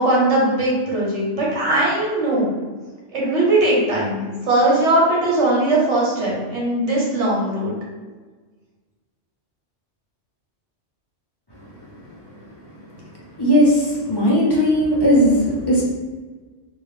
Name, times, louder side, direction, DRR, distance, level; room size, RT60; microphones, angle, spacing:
voice 1, 0.0-2.5 3.1-7.8, right 1 dB, 70° right, -4 dB, 1.3 m, -19 dB
voice 2, 13.4-15.8, equal, 25° left, -6 dB, 0.8 m, -17 dB
3.1 x 2.6 x 3.3 m, 1.4 s
omnidirectional pair, 1.2 m